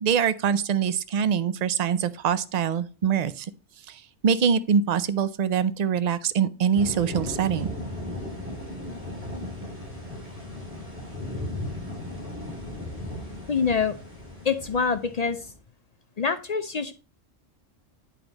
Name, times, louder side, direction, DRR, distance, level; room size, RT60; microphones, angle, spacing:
voice 1, 0.0-3.5 3.9-4.0 4.2-7.7, right 7 dB, 65° right, 0.4 m, -24 dB
sound 1, 6.7-15.6, left 1 dB, 10° right, 3.2 m, -36 dB
voice 2, 13.5-14.0 14.4-15.4 16.2-16.9, left 5 dB, 60° left, 0.4 m, -25 dB
8.9 x 5.0 x 4.0 m
omnidirectional pair, 1.3 m